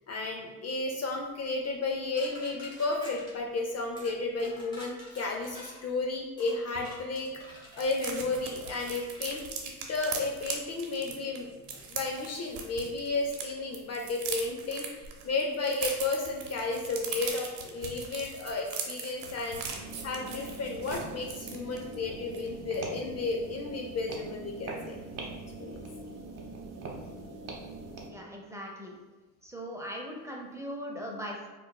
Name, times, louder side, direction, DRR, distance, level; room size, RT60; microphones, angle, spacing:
voice 1, 0.1-19.6 20.0-25.0 25.6-25.8, left 3 dB, 35° left, 1 dB, 0.5 m, -33 dB
sound 1, 2.2-3.3 4.0-4.1 4.4-5.8 6.4-8.0 8.7-9.4 10.0-10.2, left 1 dB, 10° left, 1.1 m, -49 dB
sound 2, 6.7-6.9 7.1-7.2 7.5-13.4 13.7-21.9 22.3-22.5 22.7-23.0, right 6 dB, 75° right, 0.7 m, -40 dB
sound 3, 19.7-28.1, right 3 dB, 35° right, 0.9 m, -42 dB
voice 2, 28.1-29.0 29.4-31.5, equal, 5° right, -1 dB, 0.6 m, -39 dB
4.5 x 2.4 x 2.2 m, 1.2 s
supercardioid pair, 75°, 43 cm